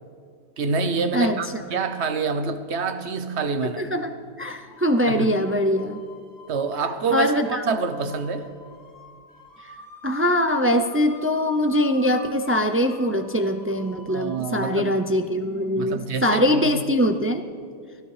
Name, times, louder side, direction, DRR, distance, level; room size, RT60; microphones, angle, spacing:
voice 1, 0.6-3.8 5.1-5.4 6.5-7.3 7.7-8.5 14.1-14.9 15.8-16.8, right 4 dB, 70° right, 9 dB, 1.1 m, -26 dB
sound 1, 0.7-0.9 2.2-2.3 3.3-3.4 4.6-16.4, left 3 dB, 15° left, 1.6 m, -47 dB
voice 2, 3.8-4.1 4.4-6.0 7.1-7.6 10.0-17.4, equal, 20° right, 7 dB, 0.4 m, -22 dB
20.5 x 17.0 x 3.3 m, 2.2 s
omnidirectional pair, 1.2 m